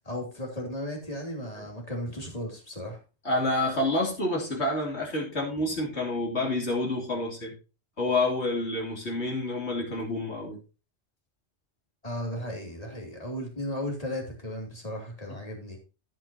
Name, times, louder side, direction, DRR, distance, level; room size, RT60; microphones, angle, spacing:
voice 1, 0.0-3.0 12.0-15.8, equal, 35° left, 2.8 m, -35 dB
voice 2, 3.2-7.5 8.0-10.6, left 2 dB, 75° left, 3.2 m, -28 dB
16.0 x 6.1 x 2.8 m
omnidirectional pair, 1.1 m